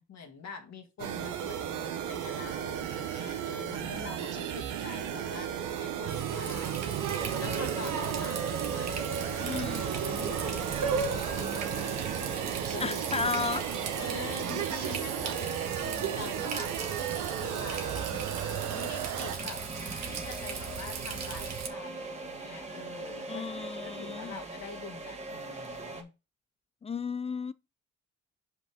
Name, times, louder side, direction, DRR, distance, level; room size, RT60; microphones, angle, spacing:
voice 1, 0.0-9.1 9.5-9.6 9.9-12.2 12.6-13.0 13.5-19.6 20.1-26.1, left 5 dB, 60° left, 1.8 m, -45 dB
sound 1, 1.0-19.4, right 9 dB, 85° right, 1.0 m, -35 dB
Water tap faucet, 6.1-21.7, right 7 dB, 60° right, 1.3 m, -36 dB
sound 2, 7.2-26.0, right 2 dB, 20° right, 1.6 m, -41 dB
voice 2, 9.4-10.0 12.8-13.7 14.8-14.9 23.3-24.4 26.8-27.5, left 5 dB, 20° left, 0.3 m, -34 dB
5.4 x 5.1 x 4.9 m
cardioid pair, 90°, 30 cm